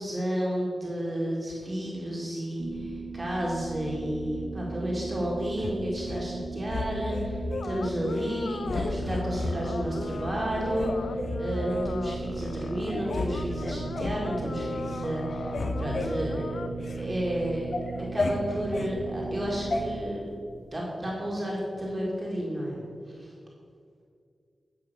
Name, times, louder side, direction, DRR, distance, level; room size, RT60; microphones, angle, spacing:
voice 1, 0.0-16.6 17.0-17.7 18.1-20.2 20.7-23.3, equal, 25° right, -4 dB, 2.0 m, -32 dB
sound 1, 2.6-20.0, right 4 dB, 75° right, 0.7 m, -38 dB
sound 2, 5.6-6.2 6.7-7.7 8.1-8.3 8.6-9.6 10.1-10.2 10.7-11.9 12.5-12.6 12.9-13.3 13.6-14.2 14.7-15.0 15.2-17.0 17.4-18.9 19.7-19.8, left 2 dB, 55° left, 0.8 m, -33 dB
sound 3, 7.5-16.7, left 5 dB, 85° left, 0.4 m, -38 dB
9.6 x 5.6 x 6.7 m, 2.3 s
wide cardioid pair, 110°, 0 cm